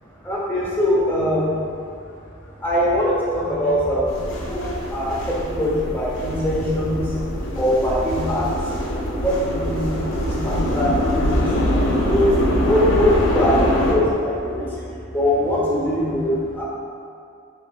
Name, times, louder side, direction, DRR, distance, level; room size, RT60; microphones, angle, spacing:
voice 1, 0.2-1.9 2.4-7.2 7.5-11.6 12.1-16.6, equal, 10° left, -7 dB, 0.6 m, -22 dB
sound 1, 4.1-13.9, left 1 dB, 70° left, 0.5 m, -23 dB
4.4 x 3.1 x 2.2 m, 2.4 s
head